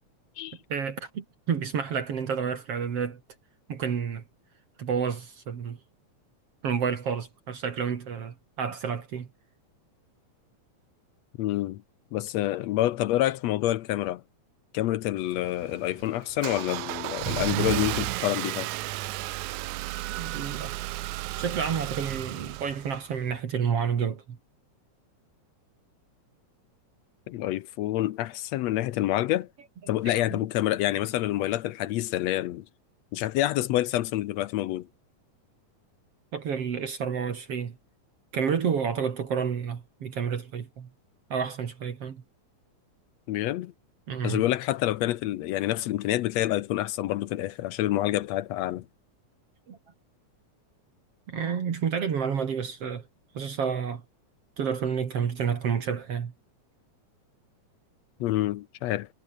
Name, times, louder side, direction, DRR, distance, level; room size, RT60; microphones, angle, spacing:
voice 1, 0.7-3.2 3.7-4.2 4.8-5.8 6.6-9.3 20.2-20.8 21.4-24.4 30.0-30.4 36.3-37.8 38.3-40.9 41.3-42.2 44.1-44.4 49.7-49.8 51.3-53.1 53.3-54.0 54.6-56.3, right 7 dB, 55° right, 2.9 m, -30 dB
voice 2, 11.4-11.8 12.1-14.2 14.7-18.7 27.3-29.5 29.9-32.7 33.1-34.9 43.3-43.7 44.2-48.9 58.2-59.1, left 14 dB, 75° left, 1.8 m, -27 dB
Car / Engine starting, 15.2-23.3, right 18 dB, 85° right, 2.1 m, -33 dB
omnidirectional pair, 3.3 m